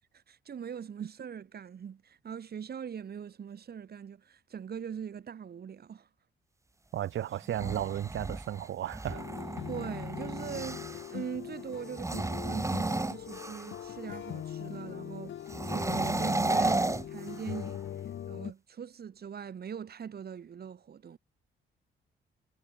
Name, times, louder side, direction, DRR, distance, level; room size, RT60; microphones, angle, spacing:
voice 1, 0.1-6.1 9.7-15.4 15.6-17.8 18.3-21.2, right 7 dB, 50° right, 5.8 m, -41 dB
voice 2, 6.9-9.2, right 11 dB, 70° right, 4.3 m, -34 dB
sound 1, 7.4-11.1 11.9-13.9 15.5-17.8, right 2 dB, 15° right, 3.3 m, -33 dB
sound 2, 9.1-18.5, left 10 dB, 70° left, 7.2 m, -41 dB
cardioid pair, 90°, 20 cm